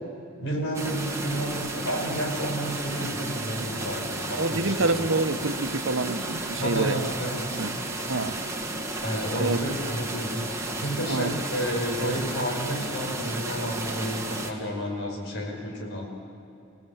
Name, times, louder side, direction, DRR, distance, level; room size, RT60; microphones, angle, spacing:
voice 1, 0.4-5.0 6.6-7.6 9.0-16.1, equal, 65° left, 1 dB, 5.5 m, -31 dB
sound 1, 0.7-14.5, right 2 dB, 15° right, 1.9 m, -33 dB
voice 2, 4.4-7.0 7.6-7.8 8.1-8.4 9.4-9.7 11.1-11.4, right 2 dB, 70° right, 9 dB, 1.1 m, -27 dB
27.5 x 18.0 x 7.3 m, 2.7 s
head